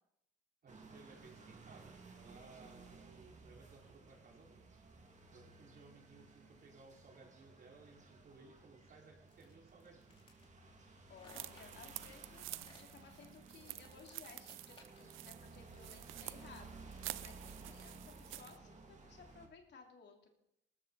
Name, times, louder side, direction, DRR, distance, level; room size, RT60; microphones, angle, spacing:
voice 1, 0.6-4.6 5.3-10.2, right 3 dB, 50° right, -1 dB, 4.8 m, -60 dB
sound 1, 0.7-19.5, right 3 dB, 35° right, 2.3 m, -57 dB
sound 2, 9.3-15.2, left 2 dB, 25° left, 4.0 m, -64 dB
voice 2, 11.1-20.3, left 5 dB, 60° left, 2 dB, 2.8 m, -59 dB
sound 3, 11.3-18.6, right 16 dB, 90° right, 0.5 m, -50 dB
19.0 x 13.5 x 4.1 m, 0.81 s
cardioid pair, 90°, 20 cm